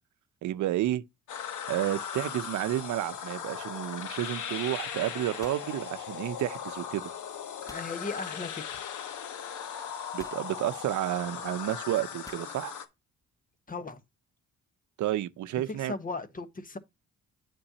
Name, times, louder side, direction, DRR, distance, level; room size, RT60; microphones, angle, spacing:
voice 1, 0.4-1.0 1.7-7.0 10.1-12.7 15.0-16.0, right 14 dB, 75° right, 0.7 m, -31 dB
sound 1, 1.3-12.9, left 8 dB, 75° left, 1.2 m, -38 dB
sound 2, 5.4-6.6 7.7-8.0 9.1-9.2 10.2-10.5 12.3-12.6, left 2 dB, 10° left, 0.5 m, -51 dB
voice 2, 7.6-8.8 13.7-14.0 15.7-16.8, left 3 dB, 30° left, 1.1 m, -37 dB
8.7 x 5.3 x 2.7 m
cardioid pair, 90°, 30 cm